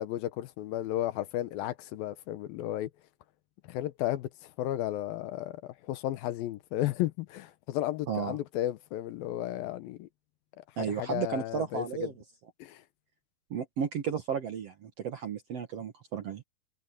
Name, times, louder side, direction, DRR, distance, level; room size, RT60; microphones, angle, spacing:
voice 1, 0.0-2.9 3.7-10.1 10.8-11.9 12.6-12.8, left 14 dB, 80° left, 2.5 m, -33 dB
voice 2, 8.1-8.4 10.8-12.1 13.5-16.4, right 7 dB, 60° right, 1.7 m, -33 dB
omnidirectional pair, 4.4 m